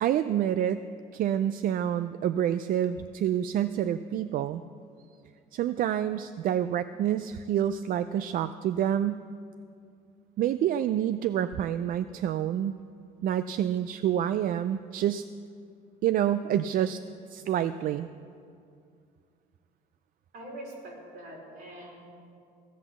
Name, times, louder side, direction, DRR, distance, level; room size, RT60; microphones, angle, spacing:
voice 1, 0.0-0.8 1.1-4.6 5.5-9.3 10.4-12.8 13.2-15.3 16.0-17.0 17.3-18.1, right 10 dB, 55° right, 12 dB, 0.4 m, -28 dB
voice 2, 20.3-22.1, right 1 dB, 75° right, -2 dB, 4.2 m, -43 dB
16.0 x 7.9 x 7.2 m, 2.3 s
cardioid pair, 110°, 17 cm